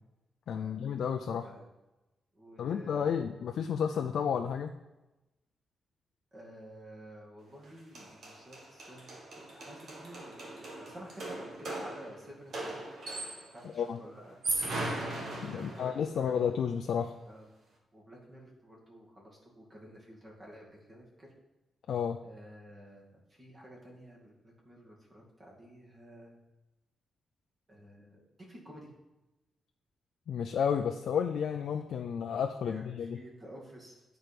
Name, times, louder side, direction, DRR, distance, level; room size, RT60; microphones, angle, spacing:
voice 1, 0.5-1.5 2.6-4.7 13.7-14.0 15.4-17.1 21.9-22.2 30.3-33.2, left 7 dB, 70° left, 4 dB, 0.4 m, -31 dB
voice 2, 2.3-3.1 6.3-12.8 13.5-14.4 15.5-16.4 17.3-17.5 17.9-21.3 22.2-26.4 27.7-28.9 32.6-34.0, equal, 30° right, -2 dB, 2.1 m, -51 dB
sound 1, 7.6-7.7 7.9-13.6 14.2-16.1, right 2 dB, 55° right, 1.6 m, -38 dB
9.9 x 4.5 x 5.1 m, 1.0 s
wide cardioid pair, 145°, 0 cm